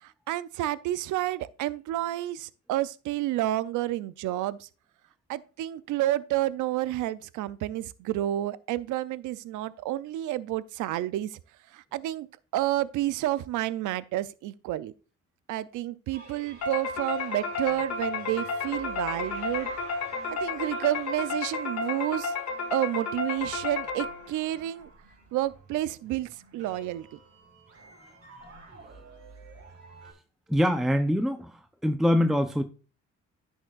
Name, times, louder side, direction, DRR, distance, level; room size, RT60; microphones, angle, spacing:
voice 1, 0.0-4.7 5.3-11.4 11.7-12.3 12.5-14.9 15.5-19.7 20.3-22.3 22.7-24.9 25.3-27.1, right 14 dB, 85° right, 0.5 m, -30 dB
sound 1, 16.1-30.1, right 3 dB, 50° right, 4.2 m, -49 dB
sound 2, 16.6-24.5, left 4 dB, 60° left, 1.6 m, -32 dB
voice 2, 30.5-32.6, equal, ahead, 0.6 m, -24 dB
10.5 x 6.4 x 2.4 m
cardioid pair, 90°, 30 cm